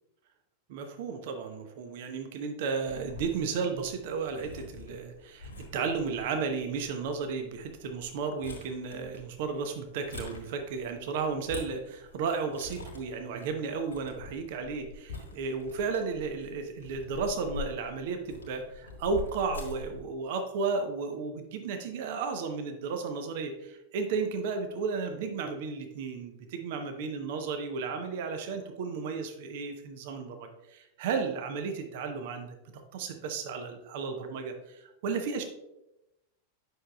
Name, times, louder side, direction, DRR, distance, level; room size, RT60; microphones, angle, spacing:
voice 1, 0.7-32.6 32.9-35.4, right 5 dB, 50° right, 6 dB, 0.8 m, -33 dB
sound 1, 2.9-20.0, left 3 dB, 70° left, 1.6 m, -46 dB
9.2 x 6.1 x 2.3 m, 0.92 s
figure-of-eight pair, 90°, 0 cm